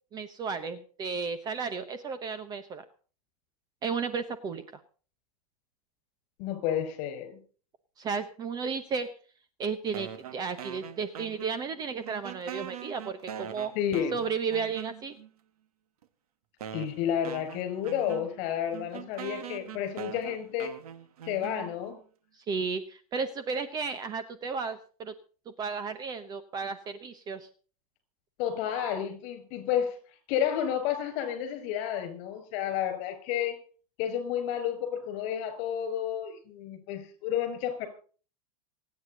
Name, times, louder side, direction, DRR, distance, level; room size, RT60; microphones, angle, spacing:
voice 1, 0.1-2.8 3.8-4.8 8.0-9.1 9.6-13.7 14.1-15.2 22.3-25.1 25.6-27.5, right 5 dB, 20° right, 11 dB, 0.9 m, -33 dB
voice 2, 6.4-7.4 13.8-14.2 16.7-20.7 21.3-22.0 28.4-30.0 30.3-33.6 34.0-37.9, left 9 dB, 40° left, 10 dB, 5.5 m, -31 dB
sound 1, 9.9-11.8 12.0-15.3 16.0-16.1 16.6-22.0, right 9 dB, 70° right, 1.9 m, -43 dB
26.5 x 9.6 x 3.9 m, 0.40 s
supercardioid pair, 155°, 20 cm